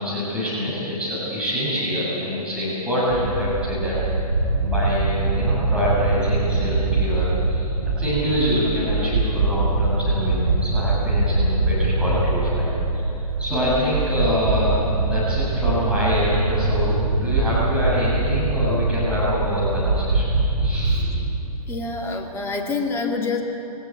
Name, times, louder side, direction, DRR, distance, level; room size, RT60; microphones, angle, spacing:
voice 1, 0.0-4.0 4.6-13.1 13.4-20.3 20.6-21.0, left 1 dB, 5° right, -9 dB, 7.1 m, -25 dB
sound 1, 3.1-21.2, right 3 dB, 50° right, 6.3 m, -23 dB
voice 2, 13.5-13.9 21.7-23.4, left 4 dB, 10° left, 0 dB, 2.3 m, -27 dB
23.0 x 17.5 x 9.0 m, 2.9 s
figure-of-eight pair, 125°, 20 cm